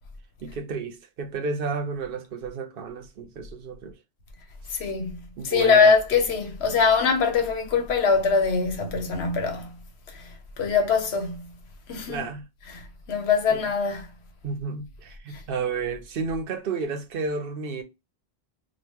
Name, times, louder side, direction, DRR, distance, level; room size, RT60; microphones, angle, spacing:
voice 1, 0.4-3.9 4.7-4.8 5.4-5.9 12.1-12.4 13.5-13.6 14.4-17.8, right 4 dB, 65° right, 0.8 m, -32 dB
voice 2, 4.7-5.2 5.4-9.8 10.1-11.5 11.9-12.3 12.7-14.1 15.3-15.4, left 5 dB, 90° left, 1.1 m, -23 dB
3.0 x 2.4 x 3.4 m
omnidirectional pair, 1.1 m